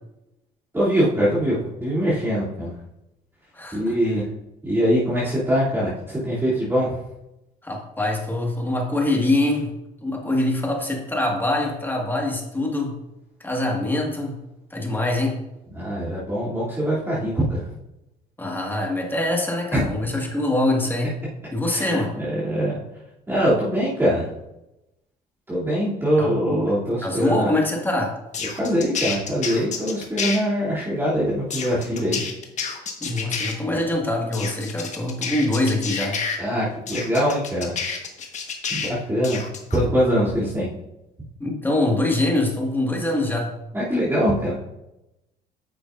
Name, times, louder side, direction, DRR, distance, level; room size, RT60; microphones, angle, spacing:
voice 1, 0.7-2.8 3.7-4.2 4.6-7.0 15.7-17.7 19.7-19.8 21.7-22.8 23.3-24.3 25.5-27.5 28.6-32.2 33.2-33.3 36.4-37.7 38.7-39.4 39.7-40.7 43.7-44.7, equal, 15° right, -10 dB, 2.8 m, -23 dB
voice 2, 3.5-3.9 7.6-9.7 10.0-12.9 13.4-14.4 14.7-15.4 18.4-21.1 21.5-22.1 26.2-26.3 27.0-28.2 33.0-36.2 41.4-43.5, left 1 dB, 10° left, 0 dB, 1.8 m, -24 dB
sound 1, 28.3-30.4 31.5-33.5 34.3-36.4 36.9-38.9 39.2-39.8, left 6 dB, 45° left, 1.4 m, -29 dB
9.4 x 6.8 x 2.6 m, 0.92 s
cardioid pair, 110°, 17 cm